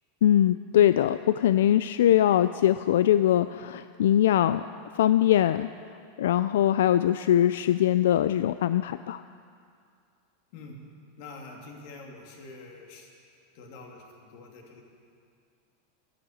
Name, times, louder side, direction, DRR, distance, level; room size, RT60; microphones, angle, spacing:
voice 1, 0.2-4.7 4.9-5.7 6.2-9.2, left 11 dB, 80° left, 13 dB, 0.3 m, -22 dB
voice 2, 11.2-13.1 13.5-14.8, left 3 dB, 50° left, 1 dB, 2.5 m, -46 dB
12.0 x 11.0 x 8.6 m, 2.3 s
supercardioid pair, 170°, 0 cm